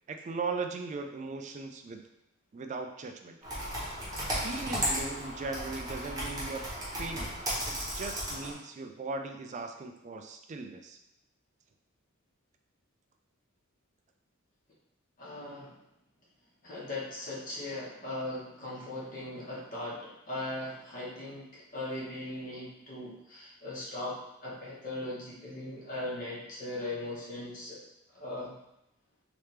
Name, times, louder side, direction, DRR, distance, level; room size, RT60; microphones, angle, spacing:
voice 1, 0.1-2.0 2.5-3.4 4.3-6.6 7.0-7.4 7.6-11.0, right 3 dB, 35° right, 5 dB, 0.3 m, -38 dB
Computer keyboard, 3.4-8.5, equal, 15° right, 1.0 m, -35 dB
voice 2, 15.2-15.8 16.6-27.8 28.1-28.5, left 1 dB, 40° left, -7 dB, 1.1 m, -39 dB
3.2 x 2.9 x 3.2 m, 0.83 s
head